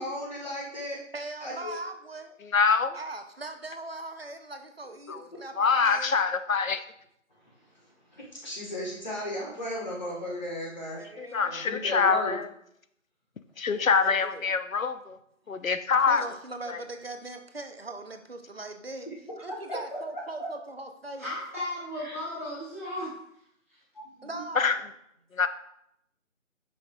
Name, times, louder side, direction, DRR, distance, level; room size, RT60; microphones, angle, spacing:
voice 1, 0.0-1.0 1.4-1.8 8.1-11.0 11.5-12.4 19.0-19.1 20.4-20.5 22.0-22.2 24.0-24.4, left 1 dB, 35° left, -3 dB, 1.9 m, -35 dB
voice 2, 1.1-2.4 2.9-6.2 11.0-12.1 13.7-14.5 16.1-19.1 19.4-21.3 24.2-24.8, right 2 dB, 50° right, 6 dB, 0.8 m, -40 dB
voice 3, 2.5-3.0 5.1-5.2 5.6-6.8 11.2-12.5 13.6-15.2 15.5-16.2 16.7-16.8 24.6-24.8 25.3-25.5, left 5 dB, 85° left, 11 dB, 0.7 m, -25 dB
voice 4, 21.2-23.1 23.7-23.8, left 1 dB, 10° right, -12 dB, 1.5 m, -35 dB
8.7 x 5.9 x 2.6 m, 0.76 s
figure-of-eight pair, 170°, 40 cm